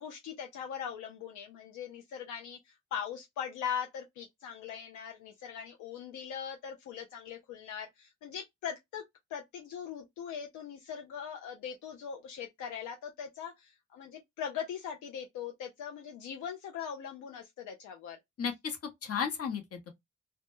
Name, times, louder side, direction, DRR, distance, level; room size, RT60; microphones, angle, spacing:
voice 1, 0.0-9.0 9.3-18.2, left 8 dB, 80° left, 0.5 m, -40 dB
voice 2, 18.4-19.9, left 7 dB, 50° left, 0.8 m, -34 dB
2.1 x 2.0 x 2.9 m
supercardioid pair, 50°, 30 cm